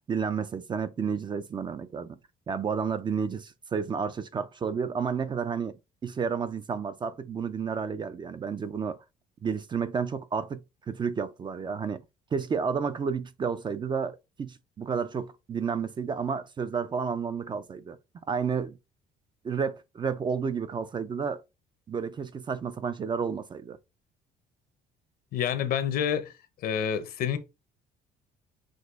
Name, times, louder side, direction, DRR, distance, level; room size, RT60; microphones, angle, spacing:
voice 1, 0.1-2.2 2.5-5.8 6.0-9.0 9.4-12.0 12.3-18.0 18.3-18.8 19.4-21.4 21.9-23.8, right 6 dB, 25° right, 0.3 m, -31 dB
voice 2, 25.3-26.3 26.6-27.4, left 8 dB, 60° left, 0.7 m, -28 dB
6.2 x 2.5 x 2.4 m
cardioid pair, 110°, 17 cm